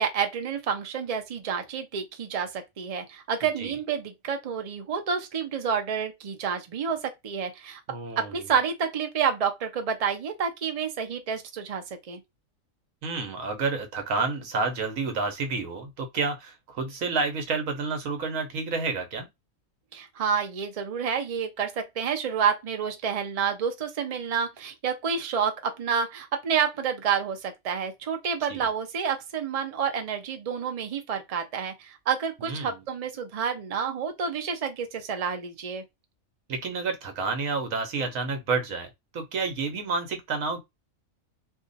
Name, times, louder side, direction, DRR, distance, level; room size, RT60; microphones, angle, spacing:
voice 1, 0.0-7.8 8.2-12.2 19.9-35.8, right 7 dB, 45° right, 0.5 m, -29 dB
voice 2, 7.9-8.3 13.0-19.3 28.5-28.6 32.4-32.8 36.5-40.6, right 4 dB, 70° right, 1.2 m, -30 dB
2.7 x 2.5 x 3.9 m
omnidirectional pair, 1.4 m